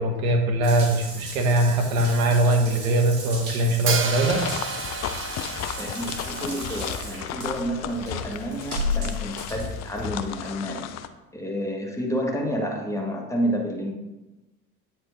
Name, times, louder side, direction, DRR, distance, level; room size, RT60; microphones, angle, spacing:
voice 1, 0.0-4.4, right 1 dB, 75° right, 3 dB, 1.2 m, -21 dB
Water tap faucet / Bathtub (filling or washing) / Drip, 0.6-10.5, left 1 dB, 50° right, 2.4 m, -35 dB
Hi-hat, 3.9-7.8, right 4 dB, 30° right, 1.0 m, -32 dB
sound 1, 4.2-11.1, left 9 dB, 40° left, 0.5 m, -34 dB
voice 2, 5.8-10.9 11.3-13.9, equal, 5° left, 0 dB, 1.6 m, -30 dB
8.7 x 4.5 x 3.5 m, 1.0 s
figure-of-eight pair, 65°, 43 cm